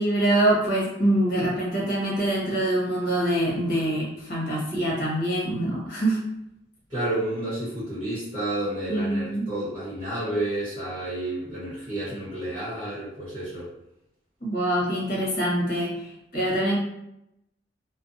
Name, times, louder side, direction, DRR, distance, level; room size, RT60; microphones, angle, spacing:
voice 1, 0.0-6.2 8.9-9.5 14.4-16.8, right 1 dB, 55° left, -5 dB, 1.1 m, -25 dB
voice 2, 6.9-13.7, right 1 dB, 25° right, -12 dB, 1.0 m, -30 dB
2.6 x 2.1 x 2.6 m, 0.84 s
head